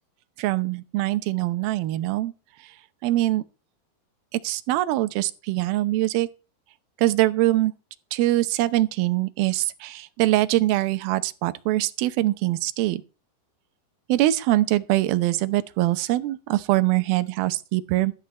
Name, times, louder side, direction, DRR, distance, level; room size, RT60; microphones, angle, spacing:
voice 1, 0.4-2.3 3.0-3.4 4.3-6.3 7.0-7.7 8.1-13.0 14.1-18.1, right 16 dB, 75° right, 2.6 m, -23 dB
13.0 x 5.1 x 7.8 m
omnidirectional pair, 4.6 m